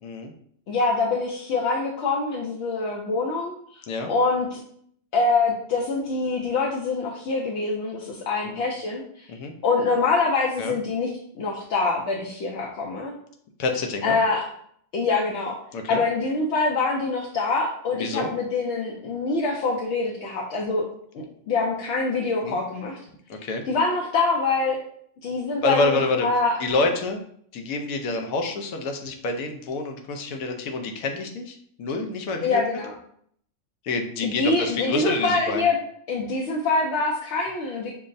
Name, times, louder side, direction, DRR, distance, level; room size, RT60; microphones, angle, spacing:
voice 1, 0.0-0.3 3.9-4.1 8.4-8.6 9.3-9.5 10.6-10.7 13.6-14.2 15.7-16.0 17.9-18.3 22.4-22.6 23.3-23.6 25.6-26.3 26.6-27.2 27.5-32.6 33.8-35.7, left 3 dB, 90° left, 4 dB, 1.1 m, -27 dB
voice 2, 0.7-3.5 4.1-4.6 5.1-9.2 9.6-11.1 11.4-13.1 14.0-14.4 14.9-15.5 15.9-20.9 21.1-23.0 23.7-24.8 25.2-26.5 32.4-32.9 34.2-35.8 36.1-37.9, left 3 dB, 65° left, -2 dB, 0.8 m, -25 dB
5.6 x 2.0 x 2.5 m, 0.64 s
omnidirectional pair, 1.4 m